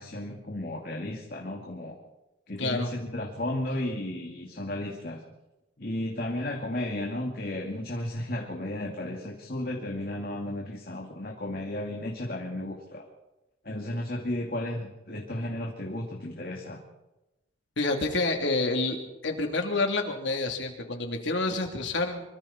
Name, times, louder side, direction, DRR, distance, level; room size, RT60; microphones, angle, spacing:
voice 1, 0.0-2.0 2.5-5.2 5.8-13.1 13.6-16.8, left 1 dB, 50° left, 0 dB, 2.4 m, -34 dB
voice 2, 2.6-2.9 17.8-19.0 19.2-22.2, left 2 dB, 70° left, 3 dB, 3.3 m, -28 dB
26.0 x 24.0 x 4.4 m, 1.0 s
head